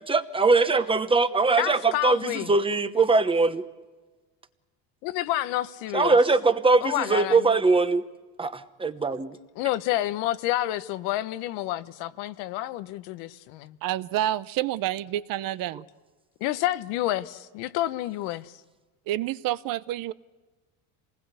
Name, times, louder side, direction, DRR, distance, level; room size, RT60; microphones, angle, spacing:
voice 1, 0.1-3.6 5.9-8.0 8.4-9.4, right 3 dB, 15° right, 1.1 m, -22 dB
voice 2, 1.6-2.5 5.0-6.2 6.8-7.5 9.6-13.8 16.4-18.6, left 14 dB, 85° left, 1.1 m, -29 dB
voice 3, 13.8-15.8 19.1-20.1, right 13 dB, 55° right, 0.8 m, -28 dB
27.5 x 19.5 x 8.2 m
cardioid pair, 135°, 40 cm